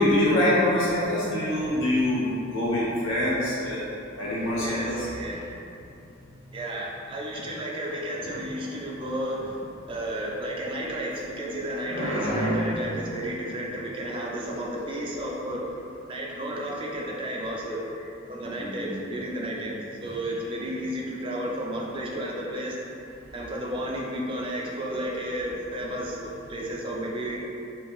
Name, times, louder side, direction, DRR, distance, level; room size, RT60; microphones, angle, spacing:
voice 1, 0.0-3.8 4.2-5.1 11.9-12.6 18.6-19.1, left 1 dB, 75° left, -8 dB, 1.1 m, -25 dB
voice 2, 4.6-5.4 6.5-15.6 16.1-17.8 18.3-22.8 23.3-27.4, right 1 dB, 25° right, -3 dB, 0.3 m, -32 dB
4.3 x 2.4 x 2.3 m, 2.7 s
head